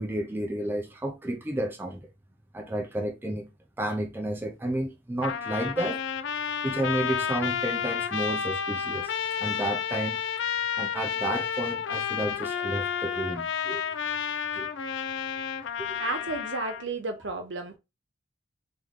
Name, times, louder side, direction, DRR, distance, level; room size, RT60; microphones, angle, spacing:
voice 1, 0.0-2.1 2.5-3.5 3.8-6.0 6.6-9.1 9.4-10.2 10.8-13.8 14.5-14.7 15.8-16.0, right 1 dB, 10° right, 0.4 m, -31 dB
Trumpet, 5.2-16.8, left 7 dB, 90° left, 0.4 m, -31 dB
voice 2, 16.0-17.8, right 3 dB, 80° right, 0.9 m, -32 dB
3.0 x 3.0 x 3.6 m
head